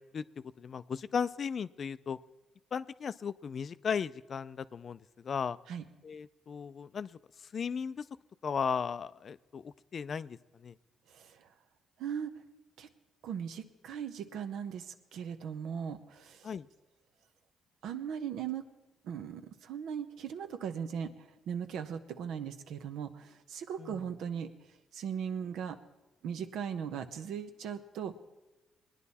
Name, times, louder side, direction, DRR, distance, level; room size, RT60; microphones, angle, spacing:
voice 1, 0.6-2.2 2.7-5.0 5.2-5.6 6.0-7.2 7.5-8.0 8.4-10.4 10.6-10.7 16.4-16.7 23.8-24.0, left 6 dB, 50° left, 15 dB, 0.4 m, -36 dB
voice 2, 11.1-11.5 12.0-12.3 12.8-12.9 13.2-16.5 17.8-18.7 19.0-24.5 24.9-25.8 26.2-28.1, right 8 dB, 80° right, 8 dB, 0.9 m, -38 dB
20.5 x 10.0 x 4.2 m, 1.1 s
cardioid pair, 90°, 0 cm